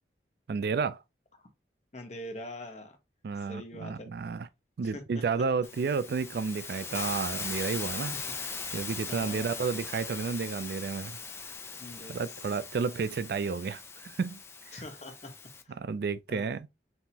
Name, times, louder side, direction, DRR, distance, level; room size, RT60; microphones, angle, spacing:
voice 1, 0.5-1.0 3.2-4.5 4.8-8.1 8.7-11.2 12.1-14.4 14.7-14.8 15.8-16.7, right 5 dB, 60° right, 0.3 m, -31 dB
voice 2, 1.9-3.0 3.4-4.1 4.9-5.2 8.1-8.2 9.1-9.6 11.8-12.4 14.7-15.3 15.6-15.7 16.3-16.6, left 1 dB, 40° left, 1.0 m, -43 dB
Hiss, 5.6-15.6, left 5 dB, 15° left, 0.4 m, -40 dB
5.5 x 2.9 x 2.8 m
head